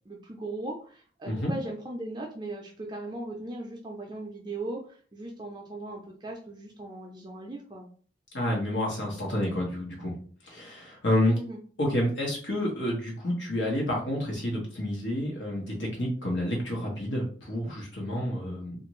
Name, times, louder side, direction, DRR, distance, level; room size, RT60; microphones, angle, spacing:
voice 1, 0.1-7.9 11.3-11.6, right 2 dB, 25° right, 0 dB, 0.4 m, -38 dB
voice 2, 8.3-10.2 10.4-11.4 11.8-18.8, left 1 dB, 85° left, -2 dB, 1.1 m, -29 dB
2.6 x 2.5 x 3.0 m, 0.44 s
head